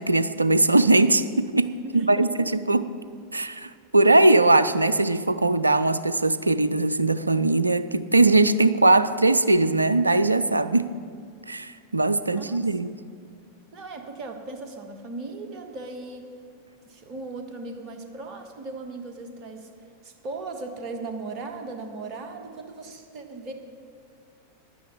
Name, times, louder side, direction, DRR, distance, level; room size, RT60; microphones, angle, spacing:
voice 1, 0.0-2.8 3.3-10.9 11.5-12.9, right 2 dB, 80° right, 14 dB, 0.4 m, -20 dB
voice 2, 1.8-2.4 12.4-12.9 13.7-16.3 16.8-19.7 20.0-23.5, right 3 dB, 35° right, 5 dB, 1.4 m, -37 dB
10.5 x 9.2 x 7.1 m, 2.1 s
figure-of-eight pair, 90°, 0 cm